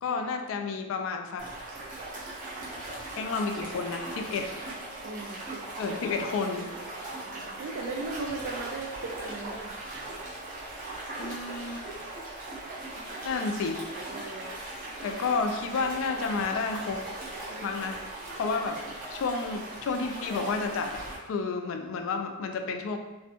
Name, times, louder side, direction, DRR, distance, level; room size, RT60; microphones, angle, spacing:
voice 1, 0.0-1.5 3.1-4.5 5.8-6.7 11.2-11.8 13.2-13.8 15.0-17.0 17.6-18.0 18.3-18.8 19.1-21.0 21.3-23.0, left 4 dB, 65° left, 5 dB, 0.3 m, -31 dB
sound 1, 1.4-21.2, right 2 dB, 40° right, 0.8 m, -39 dB
voice 2, 5.0-5.6 5.9-6.0 7.2-9.7 14.1-14.5 17.5-17.8 18.4-18.6, right 3 dB, 60° right, -1 dB, 0.3 m, -38 dB
2.6 x 2.1 x 2.7 m, 1.1 s
head